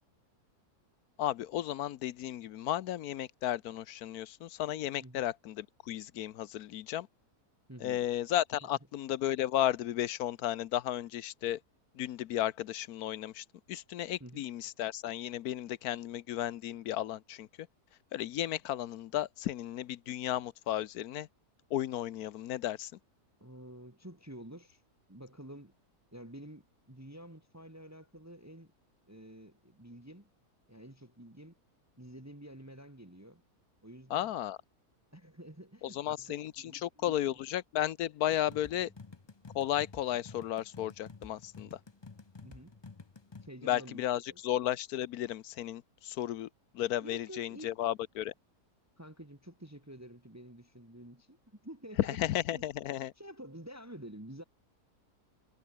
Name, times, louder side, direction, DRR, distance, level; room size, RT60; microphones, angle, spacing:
voice 1, 1.2-7.1 7.8-11.6 11.9-17.5 18.1-21.3 21.7-22.9 34.1-34.6 35.8-38.9 39.5-41.8 43.6-46.5 46.7-48.3 52.0-53.1, left 12 dB, 75° left, 1.2 m, -34 dB
voice 2, 7.7-8.0 14.2-14.4 23.4-24.8 25.1-25.7 26.1-28.7 29.1-30.3 30.7-31.6 32.0-33.4 33.8-34.3 35.1-37.1 38.8-38.9 42.4-42.8 43.4-44.0 44.3-44.4 47.0-47.7 49.0-51.4 51.6-52.6 53.2-54.4, right 1 dB, 10° right, 2.2 m, -49 dB
sound 1, 38.3-43.5, left 4 dB, 30° left, 0.5 m, -51 dB
omnidirectional pair, 1.7 m